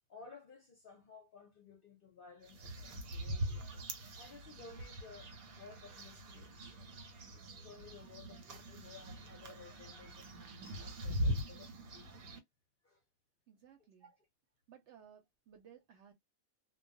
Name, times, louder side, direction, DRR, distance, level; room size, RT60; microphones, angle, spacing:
voice 1, 0.1-3.8 4.2-6.6 6.9-12.2 12.8-13.0 14.0-14.3, left 4 dB, 55° left, 0.6 m, -57 dB
sound 1, 2.4-12.4, equal, 85° right, 1.1 m, -42 dB
voice 2, 13.5-14.1 14.7-16.1, right 8 dB, 65° right, 0.8 m, -60 dB
2.3 x 2.1 x 2.5 m
omnidirectional pair, 1.5 m